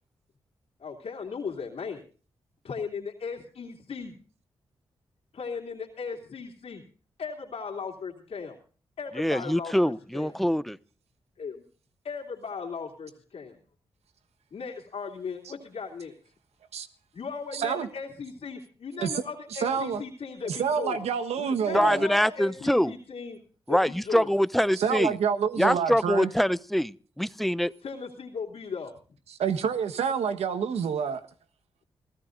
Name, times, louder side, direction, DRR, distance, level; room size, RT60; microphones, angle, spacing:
voice 1, 0.8-2.0 2.6-4.1 5.3-6.8 7.2-8.6 9.0-10.4 11.4-11.6 12.0-13.6 14.5-16.1 17.1-21.0 21.4-23.4 23.7-24.3 27.8-28.9, left 5 dB, 75° left, 2.9 m, -37 dB
voice 2, 9.2-10.8 21.7-22.9 23.7-25.2 25.6-27.7, equal, ahead, 0.7 m, -24 dB
voice 3, 17.5-17.9 19.0-19.2 19.5-20.0 20.4-22.1 24.7-26.3 29.4-31.2, right 7 dB, 85° right, 1.3 m, -27 dB
27.0 x 15.5 x 2.6 m
cardioid pair, 55°, 10 cm